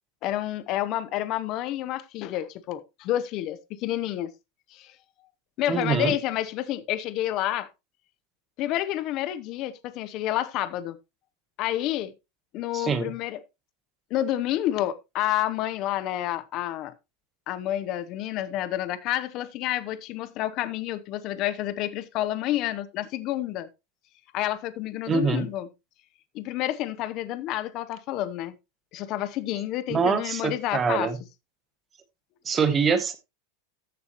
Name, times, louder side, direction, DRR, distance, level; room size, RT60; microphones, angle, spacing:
voice 1, 0.2-4.3 4.7-4.9 5.6-7.7 8.6-11.0 11.6-12.1 12.5-13.4 14.1-16.9 17.5-23.7 24.3-25.7 26.3-28.6 28.9-31.1, left 13 dB, 30° left, 0.8 m, -29 dB
voice 2, 5.7-6.1 12.7-13.1 25.1-25.5 29.9-31.2 32.4-33.2, right 5 dB, 15° right, 1.0 m, -24 dB
14.0 x 6.9 x 3.0 m
supercardioid pair, 175°, 0 cm